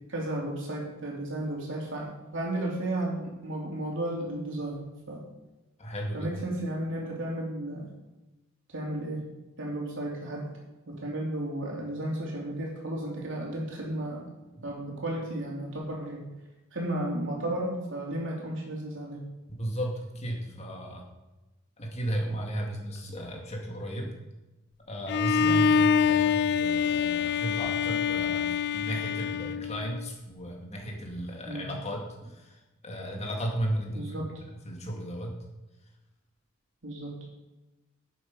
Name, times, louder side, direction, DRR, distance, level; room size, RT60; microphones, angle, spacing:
voice 1, 0.1-5.2 6.1-7.9 8.7-9.3 9.6-10.5 10.9-14.2 14.6-16.3 16.7-19.2 25.4-25.8 31.4-31.7 33.9-34.3 36.8-37.2, right 1 dB, 65° right, -1 dB, 3.3 m, -33 dB
voice 2, 5.8-6.3 19.6-21.0 21.8-24.1 24.9-28.5 28.7-32.6 32.8-34.3 34.6-35.3, equal, 35° left, 0 dB, 2.4 m, -34 dB
Bowed string instrument, 25.1-30.1, left 6 dB, 55° left, 0.3 m, -26 dB
11.5 x 8.2 x 5.5 m, 1.1 s
head